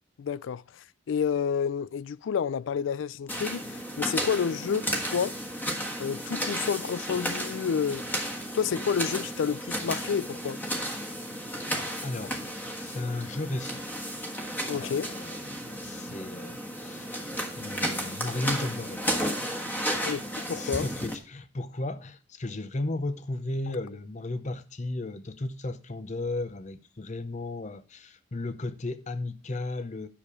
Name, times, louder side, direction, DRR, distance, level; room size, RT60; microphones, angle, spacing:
voice 1, 0.2-0.6 1.1-5.4 6.0-8.0 8.5-10.6 14.7-15.1 20.0-20.9, left 7 dB, 80° left, 0.4 m, -29 dB
sound 1, 3.3-21.1, equal, 10° left, 1.4 m, -33 dB
voice 2, 12.0-12.4 12.8-13.9 14.7-17.1 17.6-19.0 19.7-20.1 20.5-30.1, left 2 dB, 40° left, 0.7 m, -35 dB
10.0 x 6.8 x 4.8 m
head